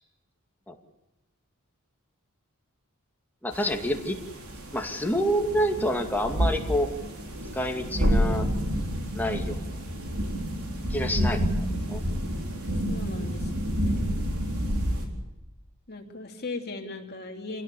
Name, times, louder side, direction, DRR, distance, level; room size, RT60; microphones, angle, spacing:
voice 1, 3.4-4.2 4.7-6.9 7.5-8.5 9.1-9.7 10.9-12.0, equal, 10° left, 2 dB, 2.3 m, -28 dB
sound 1, 3.5-15.1, equal, 85° right, 4.3 m, -29 dB
voice 2, 12.9-14.3 15.9-17.6, left 3 dB, 50° left, 2 dB, 3.0 m, -38 dB
27.0 x 18.0 x 8.4 m, 1.0 s
head